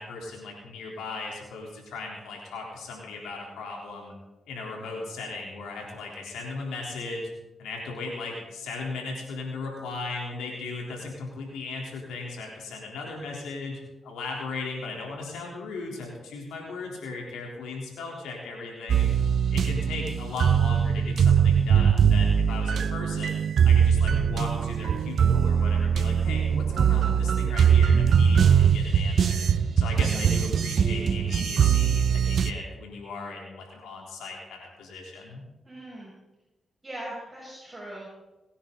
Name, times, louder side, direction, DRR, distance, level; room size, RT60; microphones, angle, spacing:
voice 1, 0.0-4.1 4.5-7.3 7.6-19.1 19.5-23.4 23.6-29.5 29.8-35.4, left 3 dB, 90° left, -1 dB, 3.8 m, -37 dB
sound 1, 18.9-32.5, right 7 dB, 70° right, 0.8 m, -22 dB
voice 2, 35.6-36.1 36.8-38.1, right 1 dB, 25° right, -6 dB, 6.4 m, -40 dB
25.5 x 9.9 x 4.1 m, 1.0 s
supercardioid pair, 50°, 0 cm